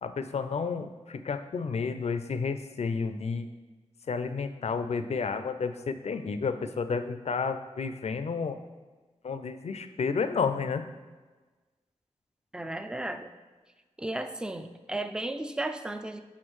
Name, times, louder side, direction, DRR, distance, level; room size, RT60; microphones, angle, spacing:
voice 1, 0.0-3.5 4.1-8.6 9.2-10.9, left 5 dB, 65° left, 10 dB, 0.4 m, -31 dB
voice 2, 12.5-13.3 14.0-16.2, right 1 dB, 5° right, 9 dB, 0.3 m, -34 dB
6.3 x 5.7 x 3.1 m, 1.3 s
wide cardioid pair, 90°, 12 cm